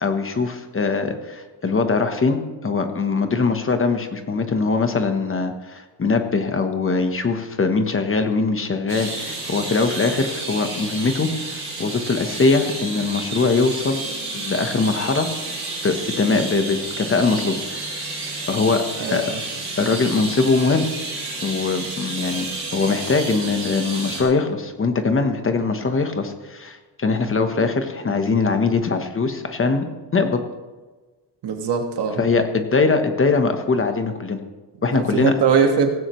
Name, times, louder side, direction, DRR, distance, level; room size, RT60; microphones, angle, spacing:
voice 1, 0.0-14.0 14.3-15.3 15.8-18.0 18.5-18.8 19.1-19.3 19.8-20.9 21.4-29.8 30.1-30.4 32.2-34.4 34.8-35.3, left 4 dB, 30° left, 6 dB, 1.1 m, -22 dB
sound 1, 8.9-24.2, right 2 dB, 30° right, 5.0 m, -31 dB
voice 2, 19.0-19.4 31.4-32.2 34.9-35.9, right 6 dB, 65° right, 4 dB, 1.8 m, -21 dB
17.0 x 16.0 x 3.1 m, 1.3 s
wide cardioid pair, 175°, 43 cm